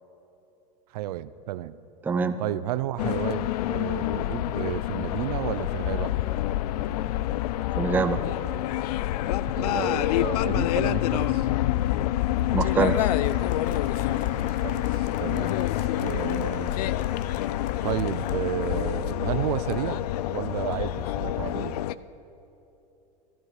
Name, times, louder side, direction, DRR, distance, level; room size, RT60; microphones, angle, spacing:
voice 1, 0.9-1.8 2.4-6.1 9.6-11.5 14.4-15.7 16.0-16.8 17.8-20.1 20.3-21.8, right 13 dB, 75° right, 16 dB, 0.5 m, -32 dB
voice 2, 2.0-2.4 7.8-8.3 12.5-13.1, right 5 dB, 10° right, 9 dB, 0.5 m, -25 dB
sound 1, 3.0-21.9, left 14 dB, 75° left, 0.4 m, -27 dB
Applause, 12.5-19.3, left 8 dB, 40° left, 0.8 m, -42 dB
14.5 x 13.5 x 4.9 m, 2.9 s
supercardioid pair, 135°, 20 cm